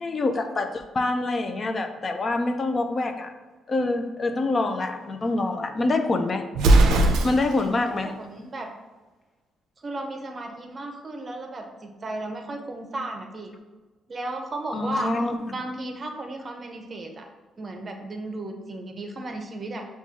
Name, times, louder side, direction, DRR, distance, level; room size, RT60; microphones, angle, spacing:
voice 1, 0.0-3.3 3.7-6.4 7.2-8.1 14.7-15.6, left 2 dB, 35° left, 6 dB, 0.4 m, -26 dB
Explosion, 6.5-7.7, right 2 dB, 85° right, 0.4 m, -18 dB
voice 2, 8.2-8.7 9.8-13.5 14.1-15.1 15.5-17.3 17.6-19.8, right 2 dB, 35° right, 4 dB, 0.6 m, -34 dB
5.9 x 2.3 x 2.8 m, 1.2 s
cardioid pair, 90°, 0 cm